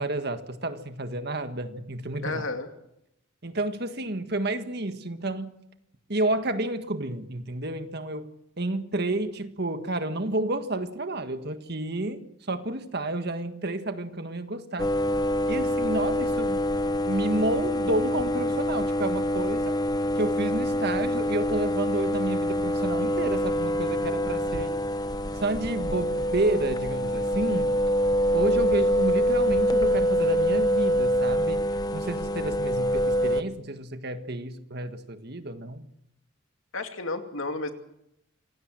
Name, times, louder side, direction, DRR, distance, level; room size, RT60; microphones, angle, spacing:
voice 1, 0.0-2.4 3.4-5.5 6.1-8.3 8.6-14.9 15.5-16.7 17.1-19.8 20.2-24.7 25.3-27.7 28.3-31.6 31.9-35.9, right 2 dB, 50° right, 1.7 m, -30 dB
voice 2, 2.2-2.7 36.7-37.7, left 3 dB, 80° left, 2.4 m, -32 dB
sound 1, 14.8-33.4, equal, 20° left, 0.9 m, -25 dB
26.5 x 17.0 x 7.7 m
head